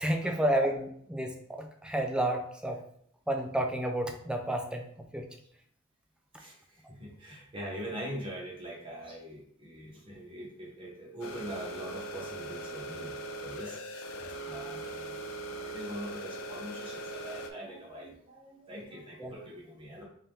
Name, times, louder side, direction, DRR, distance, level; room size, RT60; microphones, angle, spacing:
voice 1, 0.0-1.3 1.6-2.8 3.3-4.9 5.1-5.2 19.2-19.3, right 1 dB, 5° right, 3 dB, 0.4 m, -30 dB
voice 2, 6.4-13.1 13.4-14.0 14.5-15.2 15.5-20.0, equal, 25° right, -4 dB, 1.2 m, -43 dB
sound 1, 11.2-17.5, right 1 dB, 80° left, 0.5 m, -40 dB
3.8 x 2.9 x 3.4 m, 0.67 s
head